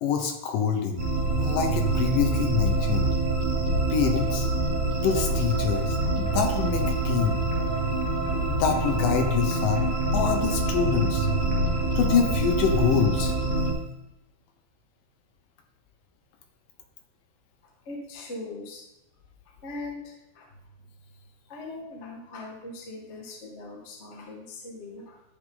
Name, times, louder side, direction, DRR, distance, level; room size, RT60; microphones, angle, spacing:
voice 1, 0.0-1.0 1.4-3.1 3.9-4.5 5.0-7.4 8.5-11.3 12.0-13.4, left 7 dB, 75° left, 5 dB, 2.3 m, -26 dB
sound 1, 1.0-13.7, right 2 dB, 30° right, 3.5 m, -25 dB
voice 2, 17.8-18.8 19.4-20.5 21.5-25.2, left 2 dB, 35° left, -1 dB, 1.1 m, -40 dB
12.0 x 6.7 x 3.8 m, 0.91 s
omnidirectional pair, 4.3 m